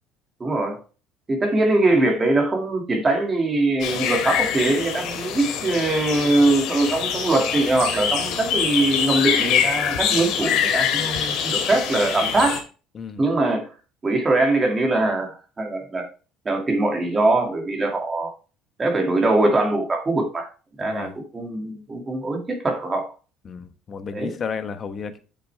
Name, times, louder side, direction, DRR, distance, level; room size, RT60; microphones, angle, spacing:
voice 1, 0.4-0.8 1.3-12.6 13.2-13.7 14.0-16.0 16.4-18.3 18.8-20.5 20.8-23.1 24.1-24.4, right 2 dB, 20° right, 2 dB, 2.3 m, -22 dB
sound 1, 3.8-12.6, left 8 dB, 60° left, 2.2 m, -24 dB
voice 2, 20.8-21.1 23.4-25.2, left 6 dB, 30° left, 9 dB, 1.0 m, -32 dB
8.2 x 6.8 x 3.4 m, 0.34 s
cardioid pair, 155°, 0 cm